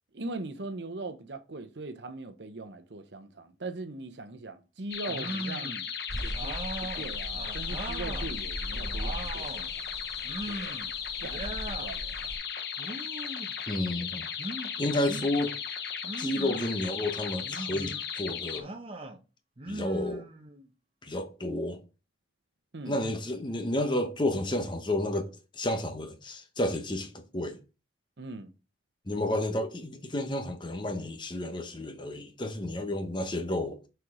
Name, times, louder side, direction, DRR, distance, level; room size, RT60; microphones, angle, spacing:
voice 1, 0.1-5.8 6.1-6.5 6.9-9.8 10.4-10.8 11.2-12.2 22.7-23.0 28.2-28.5, right 2 dB, 75° right, 0.8 m, -40 dB
sound 1, 4.9-18.6, left 7 dB, 60° left, 0.9 m, -36 dB
sound 2, 5.1-5.9 6.3-8.3 8.7-9.7 10.2-10.9 11.2-11.9 12.8-13.5 14.4-15.3 16.0-16.8 17.4-18.0 18.5-19.2 19.6-20.7, right 1 dB, 30° right, 0.8 m, -39 dB
sound 3, 6.1-12.4, equal, ahead, 2.3 m, -39 dB
voice 2, 13.7-14.3 14.8-15.6 16.2-18.7 19.7-20.3 21.0-21.8 22.9-27.6 29.1-33.8, left 1 dB, 25° left, 0.9 m, -31 dB
6.3 x 4.6 x 4.8 m
head